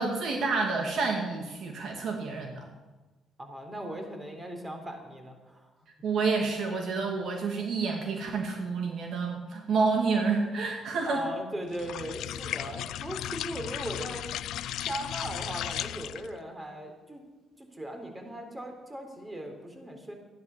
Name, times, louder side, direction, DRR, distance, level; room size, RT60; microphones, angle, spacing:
voice 1, 0.0-2.7 6.0-11.2, right 4 dB, 65° right, 2 dB, 2.1 m, -29 dB
voice 2, 3.4-5.7 11.1-14.3 14.8-17.2 17.6-20.1, right 1 dB, 20° right, 3 dB, 3.8 m, -38 dB
sound 1, 11.7-16.4, left 12 dB, 75° left, 0.5 m, -35 dB
13.5 x 10.5 x 7.3 m, 1.2 s
supercardioid pair, 65°, 0 cm